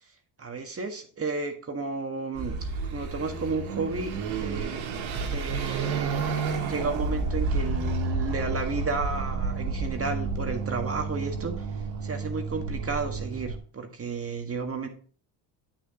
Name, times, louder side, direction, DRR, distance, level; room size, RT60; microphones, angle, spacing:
voice 1, 0.4-2.6 2.9-4.8 5.3-11.6 12.0-14.9, right 4 dB, 30° right, 4 dB, 1.6 m, -32 dB
Car passing by / Accelerating revving vroom, 2.3-13.6, right 4 dB, 85° right, 2.4 m, -30 dB
8.6 x 8.3 x 2.9 m, 0.41 s
supercardioid pair, 85°, 48 cm